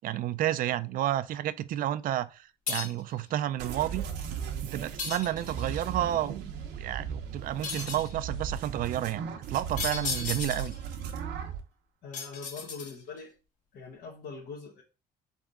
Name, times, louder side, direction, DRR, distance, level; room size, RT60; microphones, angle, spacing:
voice 1, 0.0-4.0 4.6-6.5 6.8-10.7, right 12 dB, 55° right, 0.4 m, -31 dB
sound 1, 2.7-3.1 5.0-5.8 7.6-8.2 9.8-10.8 12.1-13.2, left 5 dB, 50° left, 1.3 m, -35 dB
sound 2, 3.6-11.6, right 7 dB, 80° right, 0.9 m, -37 dB
voice 2, 12.0-13.3 13.7-14.8, left 5 dB, 70° left, 1.1 m, -42 dB
4.1 x 3.6 x 3.6 m
cardioid pair, 110°, 17 cm